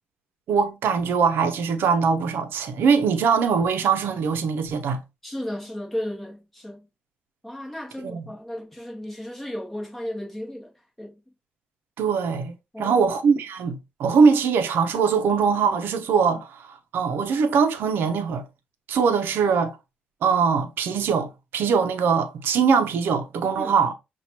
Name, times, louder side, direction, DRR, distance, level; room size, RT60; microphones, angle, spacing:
voice 1, 0.5-5.0 8.0-8.2 12.0-18.4 18.9-19.8 20.2-23.9, right 6 dB, 80° right, 0.7 m, -22 dB
voice 2, 5.2-6.8 7.4-10.7 11.0-11.1 12.7-13.1 23.6-23.7, left 1 dB, 5° left, 1.4 m, -34 dB
5.8 x 2.5 x 2.9 m
cardioid pair, 95°, 4 cm